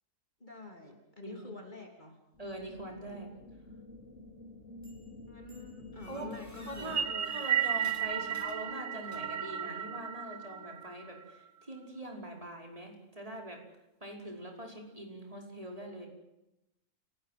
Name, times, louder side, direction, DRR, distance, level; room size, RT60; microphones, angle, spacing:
voice 1, 0.4-2.2 5.3-8.4, left 2 dB, 30° left, 3 dB, 3.4 m, -49 dB
sound 1, 2.3-7.4, left 2 dB, 55° left, 3.6 m, -49 dB
voice 2, 2.4-3.3 6.1-6.3 6.7-13.6 14.0-16.1, right 1 dB, 25° right, 1 dB, 5.4 m, -43 dB
sound 2, 4.8-5.2 5.5-9.5, equal, 10° left, 4.0 m, -56 dB
sound 3, 6.8-11.3, right 9 dB, 65° right, 1.5 m, -34 dB
30.0 x 18.5 x 7.7 m, 0.90 s
omnidirectional pair, 1.5 m